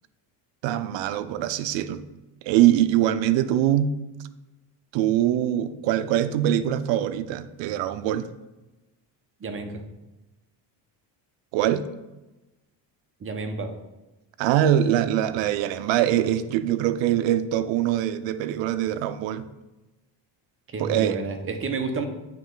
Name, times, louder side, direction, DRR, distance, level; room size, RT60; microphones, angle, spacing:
voice 1, 0.6-2.0 2.4-4.0 4.9-8.3 11.5-11.8 14.4-19.4 20.8-21.2, right 11 dB, 75° right, 11 dB, 0.5 m, -23 dB
voice 2, 9.4-9.8 13.2-13.7 20.7-22.1, right 3 dB, 30° right, 5 dB, 0.8 m, -30 dB
9.1 x 3.1 x 3.8 m, 1.1 s
cardioid pair, 115°, 45 cm